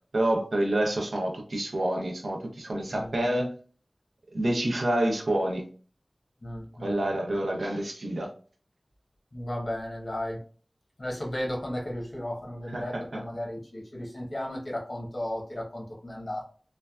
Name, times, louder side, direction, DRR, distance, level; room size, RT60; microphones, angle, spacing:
voice 1, 0.1-3.5 4.3-5.7 6.8-8.3 12.7-13.2, right 1 dB, 85° right, 0.5 m, -28 dB
voice 2, 6.4-7.4 9.3-10.4 11.0-16.5, left 1 dB, 55° left, 1.0 m, -35 dB
3.2 x 2.2 x 2.3 m
wide cardioid pair, 50°, 0 cm